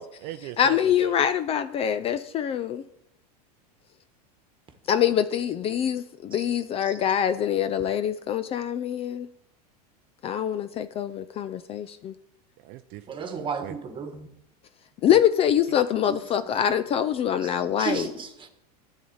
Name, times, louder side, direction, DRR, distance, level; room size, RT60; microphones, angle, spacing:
voice 1, 0.0-1.2 12.6-13.8 15.1-15.2, right 13 dB, 50° right, 0.5 m, -40 dB
voice 2, 0.6-2.8 4.9-9.3 10.2-12.1 15.0-18.1, left 9 dB, 30° left, 0.4 m, -24 dB
voice 3, 13.1-14.3 16.1-16.2 17.4-18.5, right 4 dB, 25° right, 1.4 m, -33 dB
11.0 x 4.0 x 7.8 m
supercardioid pair, 120°, 21 cm